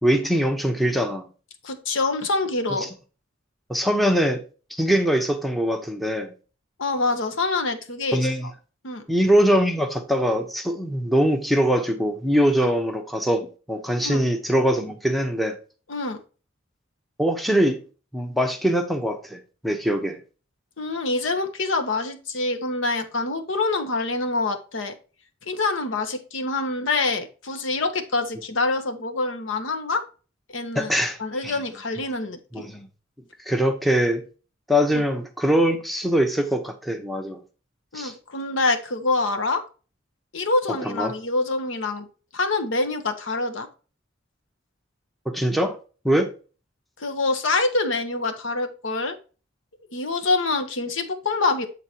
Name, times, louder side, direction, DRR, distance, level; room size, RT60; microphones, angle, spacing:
voice 1, 0.0-1.2 3.7-4.4 4.7-6.3 8.1-8.5 9.1-15.6 17.2-17.8 18.1-20.2 30.7-31.6 32.5-32.9 33.5-34.2 34.7-37.4 37.9-38.1 40.8-41.1 45.3-45.8 46.0-46.3, equal, ahead, 0.8 m, -22 dB
voice 2, 1.6-2.9 6.8-8.2 8.8-9.0 12.6-12.7 14.0-14.2 15.9-16.2 20.8-24.9 25.5-30.0 30.5-30.9 31.2-32.7 34.9-35.0 37.9-39.6 40.3-42.1 42.3-43.7 47.0-49.1 49.9-51.7, left 3 dB, 75° left, 1.0 m, -25 dB
8.1 x 3.8 x 4.4 m
head